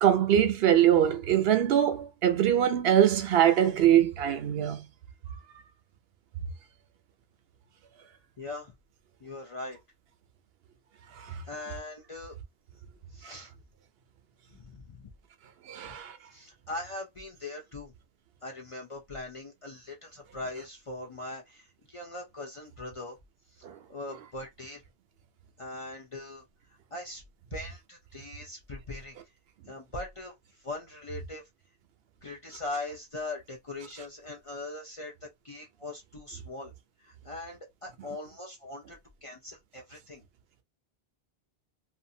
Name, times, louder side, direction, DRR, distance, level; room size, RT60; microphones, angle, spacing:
voice 1, 0.0-4.9 11.2-11.4 13.2-13.3 15.7-16.2 23.6-23.8, right 10 dB, 70° right, 0.8 m, -23 dB
voice 2, 8.4-8.7 9.2-9.8 11.5-12.3 13.1-13.5 14.5-15.1 15.9-16.0 16.3-17.9 18.4-23.2 23.5-24.8 25.6-26.4 26.9-27.2 27.5-29.2 29.7-31.4 32.2-36.7 37.0-40.2, left 2 dB, 40° left, 0.5 m, -41 dB
2.6 x 2.4 x 2.6 m
omnidirectional pair, 1.1 m